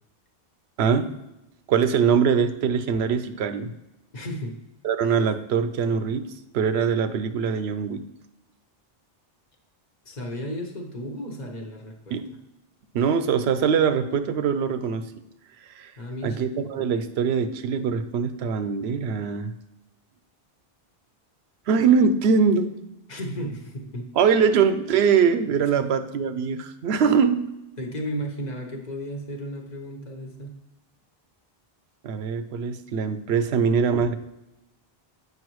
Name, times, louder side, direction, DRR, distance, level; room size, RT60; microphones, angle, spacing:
voice 1, 0.8-1.1 1.7-3.7 4.8-6.3 6.5-8.0 12.1-12.2 12.9-15.1 15.8-15.9 16.2-19.5 21.7-22.7 24.2-27.5 32.0-34.1, right 6 dB, 90° right, 10 dB, 0.8 m, -22 dB
voice 2, 4.1-4.6 10.0-12.2 16.0-16.4 23.1-24.1 25.8-25.9 27.8-30.6, equal, 45° left, 3 dB, 1.0 m, -34 dB
7.7 x 5.5 x 3.0 m, 0.91 s
omnidirectional pair, 1.0 m